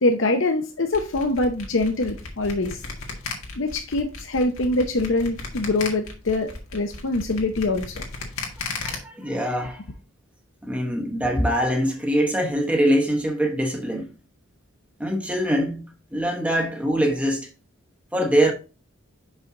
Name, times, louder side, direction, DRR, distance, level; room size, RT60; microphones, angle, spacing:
voice 1, 0.0-2.8 3.6-7.9, left 2 dB, 65° left, 0.8 m, -24 dB
sound 1, 0.9-9.0, left 4 dB, 85° left, 1.9 m, -35 dB
voice 2, 8.8-9.8 10.6-14.1 15.0-17.5 18.1-18.5, equal, 5° right, 0.8 m, -23 dB
6.0 x 5.6 x 3.8 m
head